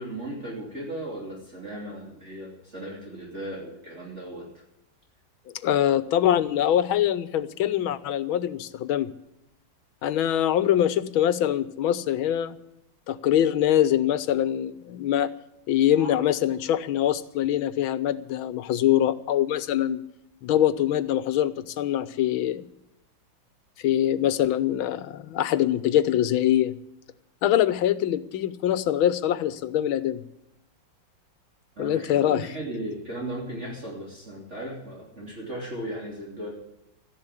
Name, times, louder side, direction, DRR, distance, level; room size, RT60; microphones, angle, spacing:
voice 1, 0.0-4.6 16.0-16.2 31.8-36.5, right 1 dB, 35° right, -3 dB, 3.5 m, -36 dB
voice 2, 5.6-9.1 10.0-12.6 13.1-15.3 15.7-20.0 20.4-22.6 23.8-26.7 27.4-30.2 31.8-32.5, left 11 dB, 90° left, 15 dB, 1.7 m, -23 dB
14.5 x 11.0 x 8.3 m, 0.81 s
omnidirectional pair, 2.1 m